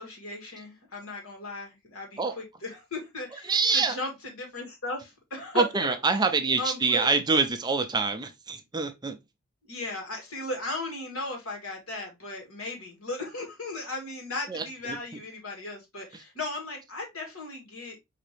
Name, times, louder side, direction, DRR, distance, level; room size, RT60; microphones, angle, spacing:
voice 1, 0.0-5.6 6.6-7.1 9.6-18.0, left 2 dB, 75° left, 1.9 m, -36 dB
voice 2, 3.3-4.0 5.5-9.2 14.5-15.0 16.1-16.2, right 4 dB, 20° right, 0.5 m, -26 dB
5.0 x 2.8 x 3.2 m
head